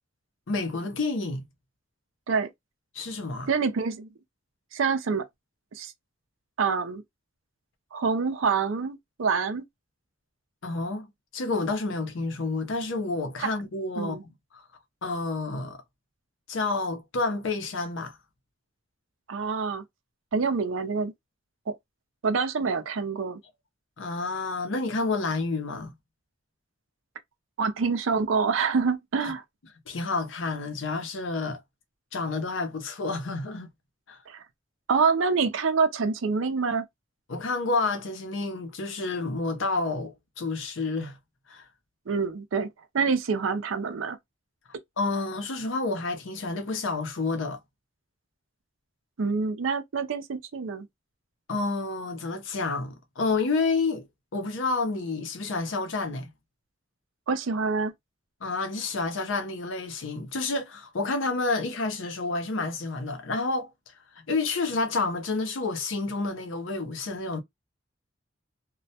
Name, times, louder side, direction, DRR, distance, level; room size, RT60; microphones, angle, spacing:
voice 1, 0.5-1.5 2.9-3.5 10.6-14.2 14.5-14.6 15.0-15.8 16.5-18.2 24.0-25.9 29.2-29.3 29.9-31.6 32.1-33.7 34.1-34.2 37.3-41.2 41.5-41.6 45.0-47.6 51.5-54.1 54.3-56.3 58.4-63.7 64.2-67.4, left 3 dB, 75° left, 0.6 m, -29 dB
voice 2, 3.5-4.1 4.7-5.2 5.7-5.9 6.6-7.0 7.9-9.6 13.4-13.5 14.0-14.2 19.3-19.8 20.3-21.1 22.2-23.4 27.6-29.4 34.3-34.4 34.9-36.8 42.1-42.7 42.9-44.2 49.2-50.9 57.3-57.9, right 5 dB, 85° right, 0.5 m, -26 dB
2.2 x 2.1 x 2.7 m
head